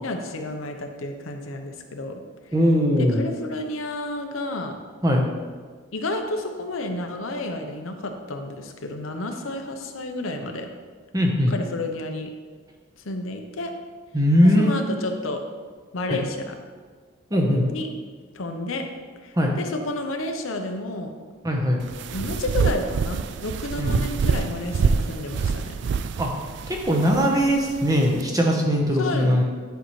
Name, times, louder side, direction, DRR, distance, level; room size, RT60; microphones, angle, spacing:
voice 1, 0.0-2.2 3.0-4.8 5.9-10.7 11.5-12.3 13.0-13.7 14.4-15.4 15.9-16.5 17.7-17.9 18.3-18.8 19.2-21.1 22.1-25.8 29.0-29.4, left 2 dB, 85° left, 4 dB, 0.8 m, -31 dB
voice 2, 2.5-3.3 5.0-5.2 11.1-11.5 14.1-14.8 16.1-16.2 17.3-17.7 19.4-19.5 21.4-21.8 23.8-24.0 26.2-26.3 26.7-29.4, equal, 15° right, 0 dB, 0.9 m, -20 dB
sound 1, 21.8-28.2, right 5 dB, 60° right, 0.3 m, -26 dB
10.5 x 5.5 x 3.2 m, 1.5 s
head